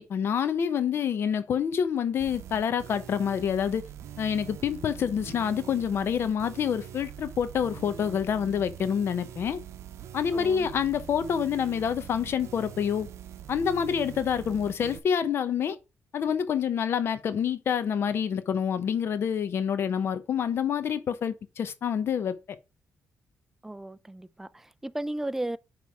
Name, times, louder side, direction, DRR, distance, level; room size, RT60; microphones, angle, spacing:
voice 1, 0.0-3.8 4.2-9.6 10.1-13.1 13.5-15.8 16.1-22.4, left 8 dB, 55° left, 0.9 m, -27 dB
sound 1, 2.2-15.0, right 10 dB, 75° right, 0.8 m, -43 dB
voice 2, 10.3-10.7 23.6-25.6, right 1 dB, 10° right, 0.3 m, -35 dB
9.5 x 3.3 x 4.8 m
cardioid pair, 135°, 5 cm